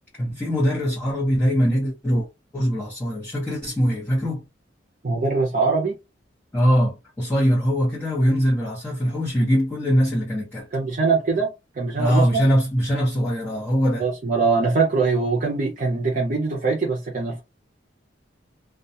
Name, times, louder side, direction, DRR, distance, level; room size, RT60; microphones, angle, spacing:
voice 1, 0.2-2.3 2.5-4.4 6.5-10.7 12.0-14.0, equal, 10° left, 0.9 m, -22 dB
voice 2, 5.0-6.0 10.7-12.5 14.0-17.4, right 4 dB, 45° right, 0.5 m, -22 dB
2.3 x 2.2 x 2.7 m
head